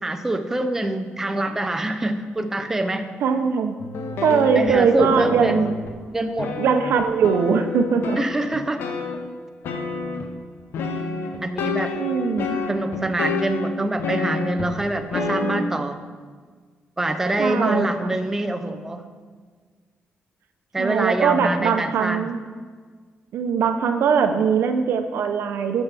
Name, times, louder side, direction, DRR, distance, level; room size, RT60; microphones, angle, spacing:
voice 1, 0.0-3.1 4.6-5.7 6.1-6.5 8.2-8.8 11.4-11.9 12.7-16.0 17.0-19.1 20.7-22.2, right 1 dB, 10° right, 7 dB, 0.4 m, -25 dB
voice 2, 3.2-3.8 4.2-5.8 6.6-8.2 12.0-12.5 17.4-18.1 20.8-22.4 23.3-25.8, right 6 dB, 85° right, 7 dB, 0.7 m, -21 dB
sound 1, 3.8-6.0 6.4-9.2 9.6-10.4 10.7-14.8 15.1-15.6, left 3 dB, 80° left, 0.8 m, -28 dB
11.0 x 7.2 x 3.5 m, 1.5 s
wide cardioid pair, 165°, 4 cm